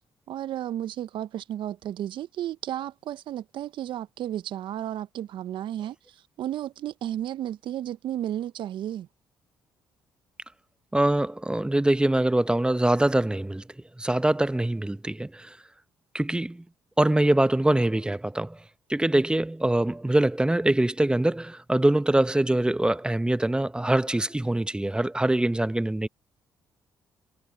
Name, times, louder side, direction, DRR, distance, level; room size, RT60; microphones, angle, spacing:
voice 1, 0.3-9.1, right 11 dB, 65° right, 1.0 m, -33 dB
voice 2, 10.9-13.6 14.0-15.6 16.1-16.6 17.0-18.6 18.9-26.1, right 1 dB, 10° right, 1.0 m, -23 dB
hypercardioid pair, 45°, 9 cm